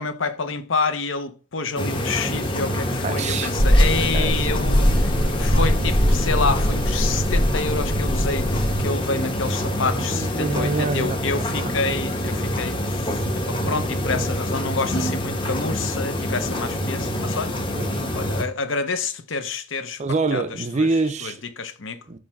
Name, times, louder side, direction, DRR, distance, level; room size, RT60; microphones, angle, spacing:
voice 1, 0.0-17.6 18.1-20.0 20.3-20.4 20.7-20.9 21.2-22.0, left 4 dB, 65° left, 0.8 m, -28 dB
sound 1, 1.8-18.4, equal, 25° left, 1.0 m, -26 dB
voice 2, 3.0-3.5 4.1-4.4 10.0-12.1 17.8-18.0 20.0-21.4 22.1-22.2, right 3 dB, 35° right, 0.5 m, -26 dB
sound 2, 3.6-8.8, equal, 85° left, 1.4 m, -21 dB
6.5 x 3.2 x 5.8 m
head